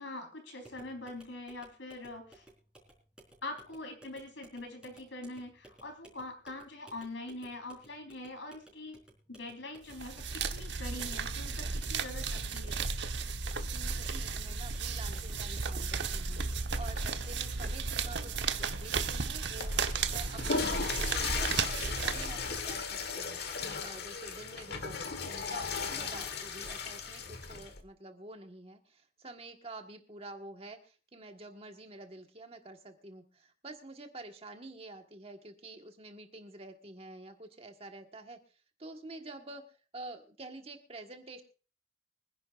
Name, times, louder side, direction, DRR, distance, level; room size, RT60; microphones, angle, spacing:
voice 1, 0.0-2.4 3.4-9.0 9.3-12.8, left 2 dB, 80° left, 4 dB, 4.2 m, -43 dB
sound 1, 0.6-18.8, right 1 dB, 5° right, 4.4 m, -59 dB
sound 2, 9.9-22.8, right 4 dB, 65° right, 1.1 m, -34 dB
voice 2, 13.7-38.4 38.8-39.6 39.9-41.4, right 2 dB, 30° right, 5 dB, 1.5 m, -48 dB
Water / Toilet flush, 19.4-27.8, left 5 dB, 55° left, 1.5 m, -36 dB
24.5 x 11.0 x 2.5 m, 0.36 s
head